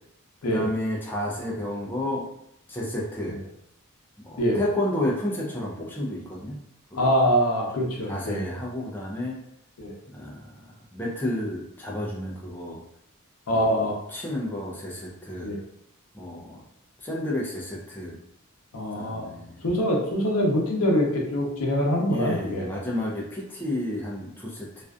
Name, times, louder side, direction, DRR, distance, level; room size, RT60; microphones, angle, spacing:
voice 1, 0.4-2.3 2.7-3.4 4.2-6.6 6.9-7.1 7.7-7.8 8.1-9.4 10.1-10.6 10.9-12.8 13.5-13.7 14.1-15.5 16.1-16.6 17.0-18.2 18.9-19.7 22.1-24.8, left 1 dB, 10° left, -3 dB, 0.3 m, -31 dB
voice 2, 7.0-8.4 9.8-9.9 13.5-14.0 15.4-15.6 18.7-19.3 19.6-22.7, equal, 75° left, 0 dB, 0.6 m, -24 dB
2.4 x 2.3 x 2.3 m, 0.76 s
head